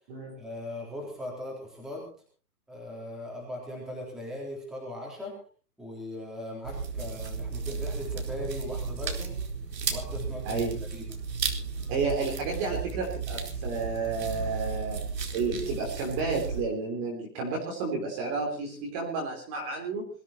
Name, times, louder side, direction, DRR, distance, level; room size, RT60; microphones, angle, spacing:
voice 1, 0.4-2.1 2.7-5.3 5.8-9.4 9.9-10.6 10.9-11.1, left 1 dB, ahead, -3 dB, 3.9 m, -39 dB
sound 1, 6.6-16.6, right 5 dB, 75° right, 4.5 m, -34 dB
voice 2, 10.5-10.8 11.9-15.0 15.3-20.1, right 4 dB, 15° right, 0 dB, 3.5 m, -31 dB
21.5 x 14.0 x 4.5 m, 0.40 s
hypercardioid pair, 175°, 49 cm